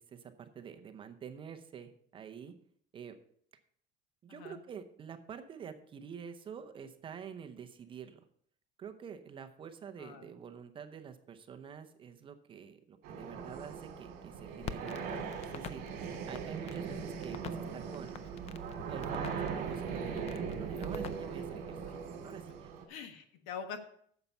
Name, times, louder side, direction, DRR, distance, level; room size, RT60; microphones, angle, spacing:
voice 1, 0.0-2.5 2.9-3.2 4.2-8.2 8.8-17.4 17.7-18.2 18.9-21.6 22.2-22.7, right 7 dB, 25° right, 7 dB, 0.7 m, -47 dB
voice 2, 4.3-4.6 10.0-10.4 22.9-23.8, left 6 dB, 75° left, 8 dB, 1.4 m, -44 dB
sound 1, 13.0-22.8, right 6 dB, 55° right, 2.3 m, -40 dB
Crackle, 14.6-21.6, left 8 dB, 30° left, 0.4 m, -48 dB
9.6 x 7.1 x 5.5 m, 0.63 s
cardioid pair, 175°, 21 cm